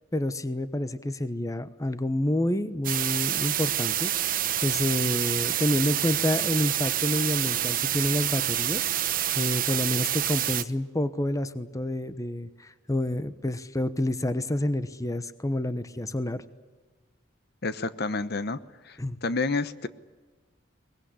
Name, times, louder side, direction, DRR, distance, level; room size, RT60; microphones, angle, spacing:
voice 1, 0.1-4.1 4.6-8.8 9.4-16.4 19.0-19.2, left 1 dB, 20° left, 13 dB, 1.0 m, -28 dB
sound 1, 2.8-10.6, right 12 dB, 45° right, 1.0 m, -27 dB
voice 2, 17.6-18.6 18.8-19.9, left 3 dB, 55° left, 13 dB, 1.0 m, -29 dB
23.0 x 20.5 x 10.0 m, 1.3 s
head